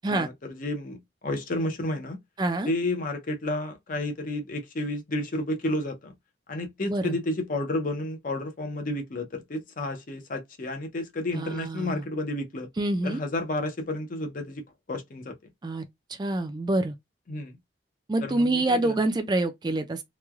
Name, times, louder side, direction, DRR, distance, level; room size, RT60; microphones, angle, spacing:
voice 1, 0.1-1.0 1.2-2.2 2.7-6.1 6.5-12.7 13.0-14.6 14.9-15.3 17.3-17.6 18.2-18.9, left 1 dB, 50° left, 0.6 m, -31 dB
voice 2, 2.4-2.7 6.9-7.1 11.3-12.0 12.8-13.2 15.6-16.9 18.1-20.0, right 2 dB, 25° right, 0.3 m, -26 dB
3.0 x 2.2 x 2.3 m
head